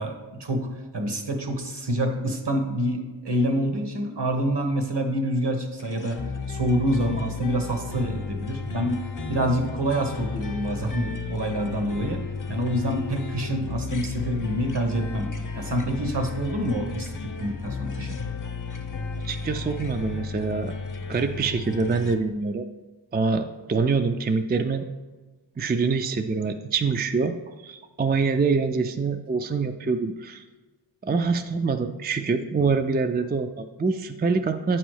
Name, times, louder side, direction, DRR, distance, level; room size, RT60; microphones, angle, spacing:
voice 1, 0.0-6.2 6.5-9.0 9.3-12.2 12.5-18.2, right 1 dB, 60° right, 4 dB, 1.2 m, -27 dB
sound 1, 5.8-22.1, left 5 dB, 45° left, 0.7 m, -33 dB
voice 2, 19.2-20.7 21.1-22.7 23.1-24.9 25.6-27.3 27.6-30.4 31.0-34.8, right 4 dB, 25° right, 7 dB, 0.4 m, -25 dB
8.3 x 3.0 x 6.3 m, 1.3 s
wide cardioid pair, 50°, 46 cm